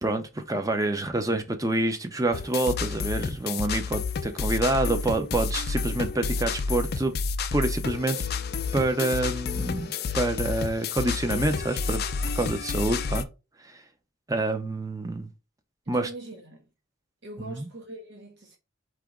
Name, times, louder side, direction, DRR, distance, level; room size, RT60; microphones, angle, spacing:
voice 1, 0.0-7.1 7.5-8.2 8.7-12.0 12.4-13.3 13.6-13.8 14.3-15.3 15.9-16.1 17.5-17.7, right 2 dB, 15° right, 0.6 m, -27 dB
sound 1, 2.3-13.2, left 5 dB, 45° left, 0.4 m, -30 dB
voice 2, 15.8-16.7 17.2-18.6, right 2 dB, 50° right, 1.1 m, -42 dB
4.8 x 3.0 x 3.6 m
head